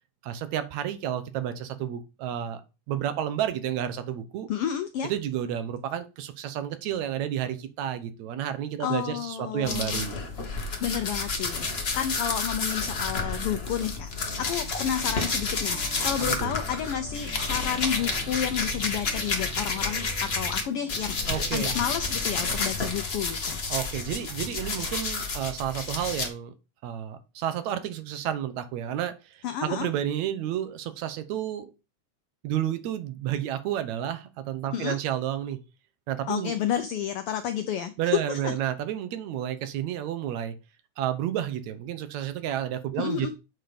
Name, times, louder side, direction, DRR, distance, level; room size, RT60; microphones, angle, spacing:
voice 1, 0.2-2.6 2.9-4.5 5.0-10.2 16.2-16.5 21.3-21.7 23.7-26.5 26.8-31.7 32.4-35.6 36.1-36.5 38.0-40.6 41.0-43.3, right 11 dB, 75° right, 11 dB, 2.1 m, -31 dB
voice 2, 4.5-5.1 8.8-10.1 10.8-14.1 14.4-21.2 21.5-23.6 29.4-29.9 34.7-35.0 36.3-38.5 43.0-43.3, left 9 dB, 90° left, 9 dB, 1.2 m, -31 dB
sound 1, 9.6-20.6 20.9-26.3, left 4 dB, 55° left, 0.7 m, -30 dB
sound 2, 14.8-23.0, right 1 dB, 50° right, 1.5 m, -46 dB
7.7 x 4.6 x 5.0 m, 0.29 s
omnidirectional pair, 3.3 m